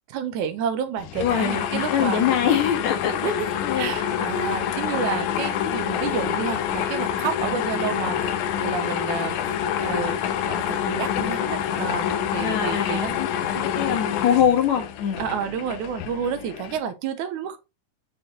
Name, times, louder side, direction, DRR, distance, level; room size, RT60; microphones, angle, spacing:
voice 1, 0.1-2.2 3.2-8.3 8.6-13.7 15.2-17.6, right 8 dB, 80° right, 2.3 m, -30 dB
sound 1, 1.0-16.8, left 9 dB, 80° left, 2.2 m, -27 dB
voice 2, 1.2-3.3 3.6-3.9 4.3-4.5 12.4-13.3 13.6-15.2, left 8 dB, 65° left, 2.7 m, -23 dB
7.0 x 4.4 x 4.2 m
omnidirectional pair, 3.6 m